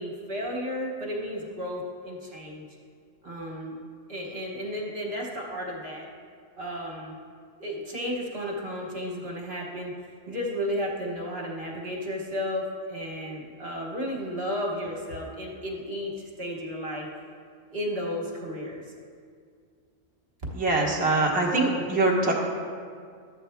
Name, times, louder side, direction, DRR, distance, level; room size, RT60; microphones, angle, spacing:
voice 1, 0.0-2.6 3.2-3.8 4.1-6.1 6.6-7.2 7.6-9.9 10.3-17.1 17.7-18.8, equal, 50° right, -1 dB, 1.4 m, -33 dB
voice 2, 20.5-22.3, right 2 dB, 5° right, -3 dB, 1.1 m, -23 dB
12.5 x 8.1 x 3.5 m, 2.1 s
omnidirectional pair, 1.4 m